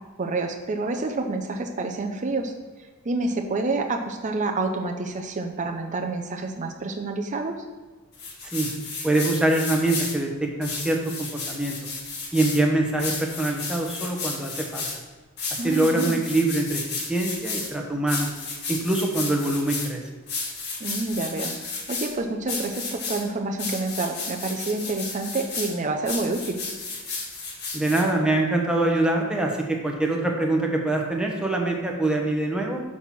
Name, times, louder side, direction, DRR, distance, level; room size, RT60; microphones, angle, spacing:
voice 1, 0.2-2.5 3.0-7.6 15.6-16.2 20.8-26.6, right 3 dB, 35° right, 3 dB, 0.6 m, -28 dB
sound 1, 8.1-10.2 10.6-12.6 13.0-15.0 15.4-17.7 18.1-19.9 20.3-22.1 22.5-23.2 23.6-25.7 26.1-28.0, left 4 dB, 50° left, 1.7 m, -33 dB
voice 2, 9.0-11.8 12.3-14.9 15.6-18.3 18.7-20.0 27.7-32.8, right 2 dB, 5° right, 0 dB, 0.9 m, -24 dB
6.4 x 4.2 x 5.9 m, 1.3 s
head